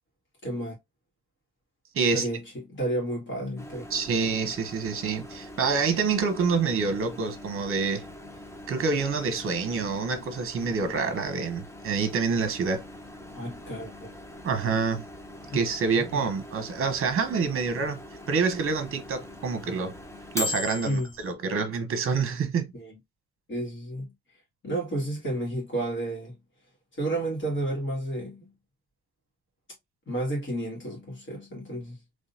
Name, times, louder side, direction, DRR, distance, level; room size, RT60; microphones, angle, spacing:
voice 1, 0.4-0.7 2.1-3.9 13.4-14.1 15.4-16.3 20.8-21.1 22.7-23.0 23.5-24.1 24.6-26.4 26.9-28.5 30.1-32.0, right 1 dB, 40° left, 2.2 m, -32 dB
voice 2, 1.9-2.3 3.9-8.0 8.7-12.8 14.4-15.0 15.5-18.0 18.3-19.9 20.3-22.7, right 5 dB, 45° right, 1.0 m, -27 dB
Microwave oven, 3.6-21.3, left 2 dB, 10° left, 0.8 m, -41 dB
3.8 x 3.1 x 2.8 m
cardioid pair, 125°, 31 cm